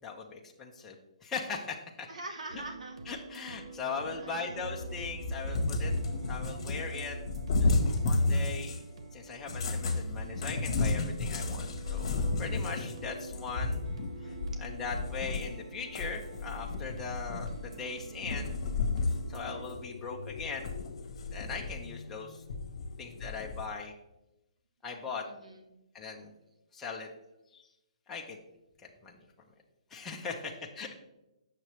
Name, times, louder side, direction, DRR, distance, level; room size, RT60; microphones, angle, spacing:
voice 1, 0.0-2.1 3.1-5.9 6.3-7.2 7.6-8.8 9.1-13.8 14.2-18.5 19.3-20.7 21.3-22.4 23.0-23.9 24.8-25.2 25.9-26.3 26.7-27.1 27.5-27.7 28.1-28.4 28.8-29.3 29.9-30.9, left 5 dB, 10° left, -2 dB, 0.6 m, -40 dB
voice 2, 2.1-3.0 4.0-4.5 25.2-25.7 30.2-30.4, right 2 dB, 85° right, 4 dB, 1.0 m, -44 dB
sound 1, 2.5-19.6, right 3 dB, 55° right, 0.8 m, -47 dB
Cat, 4.6-8.9 9.4-15.6 15.9-17.8 18.2-19.3 19.6-19.8 20.3-21.9 22.5-23.7, left 3 dB, 45° left, 1.1 m, -32 dB
sound 2, 11.5-23.7, left 3 dB, 75° left, 0.5 m, -48 dB
8.2 x 6.6 x 3.1 m, 0.93 s
hypercardioid pair, 170°, 4 cm